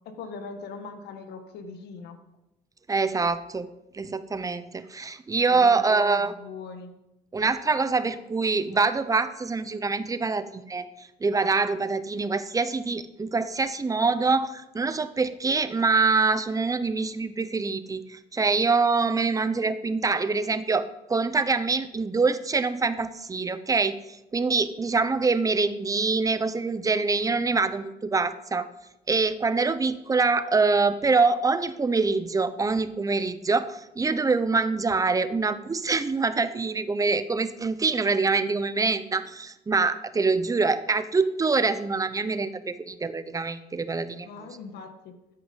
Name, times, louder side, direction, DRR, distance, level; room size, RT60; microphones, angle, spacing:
voice 1, 0.1-2.2 5.5-6.9 44.2-45.1, left 5 dB, 75° left, 7 dB, 1.8 m, -40 dB
voice 2, 2.9-3.7 3.9-6.3 7.3-24.0 24.3-28.7 29.1-44.5, right 4 dB, 20° right, 13 dB, 0.8 m, -25 dB
13.5 x 9.4 x 5.4 m, 0.92 s
cardioid pair, 110°, 17 cm